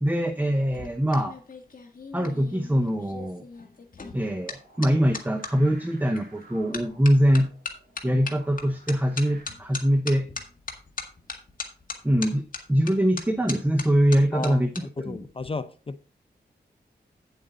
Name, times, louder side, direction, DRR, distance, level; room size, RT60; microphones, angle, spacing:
voice 1, 0.0-1.4 2.1-3.4 4.1-7.5 8.0-10.3 12.0-15.2, equal, 10° right, 0.9 m, -23 dB
sound 1, 0.5-5.5 6.2-6.4 6.7-14.8 15.1-15.5, left 4 dB, 50° left, 1.8 m, -38 dB
sound 2, 4.4-9.4, right 2 dB, 60° right, 3.8 m, -53 dB
voice 2, 15.0-16.0, left 3 dB, 30° left, 0.6 m, -33 dB
9.3 x 7.9 x 3.8 m
wide cardioid pair, 110°, 18 cm